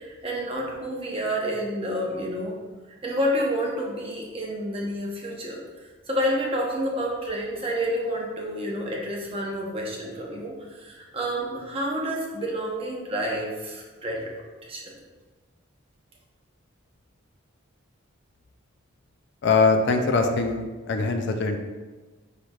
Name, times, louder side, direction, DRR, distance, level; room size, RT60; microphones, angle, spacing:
voice 1, 0.0-2.6 3.0-5.6 6.1-15.0, equal, 25° right, -2 dB, 0.8 m, -29 dB
voice 2, 19.4-21.6, left 4 dB, 55° left, 5 dB, 0.4 m, -22 dB
5.0 x 4.5 x 2.3 m, 1.3 s
head